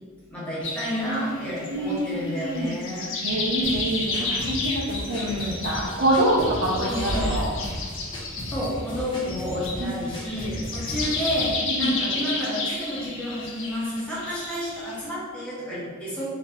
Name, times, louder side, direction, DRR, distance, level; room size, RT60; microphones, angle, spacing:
voice 1, 0.3-3.1 5.1-5.6 6.8-7.4 8.5-11.5 11.8-16.2, equal, 5° left, -9 dB, 1.2 m, -30 dB
sound 1, 0.6-15.1, left 3 dB, 60° left, 0.6 m, -32 dB
voice 2, 1.7-2.8 3.2-7.5 9.8-10.1 11.7-11.9, right 1 dB, 70° right, -6 dB, 0.6 m, -26 dB
sound 2, 3.6-11.6, left 1 dB, 20° left, 0.8 m, -36 dB
sound 3, 6.9-8.5, equal, 10° right, 0.4 m, -32 dB
3.2 x 2.8 x 3.5 m, 1.5 s
head